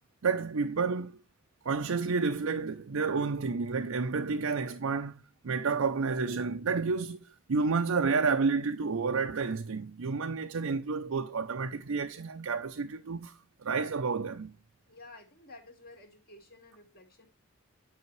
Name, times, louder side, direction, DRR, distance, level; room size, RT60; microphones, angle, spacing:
voice 1, 0.2-1.2 1.6-14.5, right 4 dB, 80° right, 0.6 m, -30 dB
voice 2, 14.9-17.3, left 2 dB, 45° left, 2.1 m, -52 dB
9.7 x 5.5 x 3.2 m
head